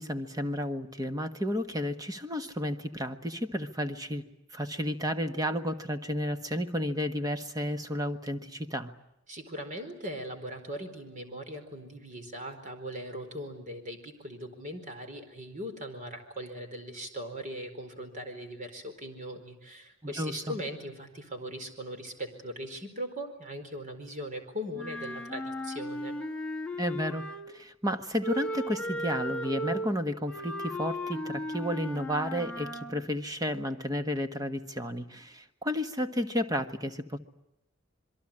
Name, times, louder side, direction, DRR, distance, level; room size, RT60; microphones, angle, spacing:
voice 1, 0.0-4.2 4.5-8.9 20.0-20.5 26.8-37.2, equal, 20° right, 7 dB, 1.5 m, -32 dB
voice 2, 9.3-26.2, equal, 40° right, 6 dB, 4.5 m, -40 dB
Wind instrument woodwind instrument, 24.7-27.6 28.2-33.0, equal, 5° left, 1.7 m, -36 dB
27.0 x 23.0 x 8.8 m, 0.83 s
head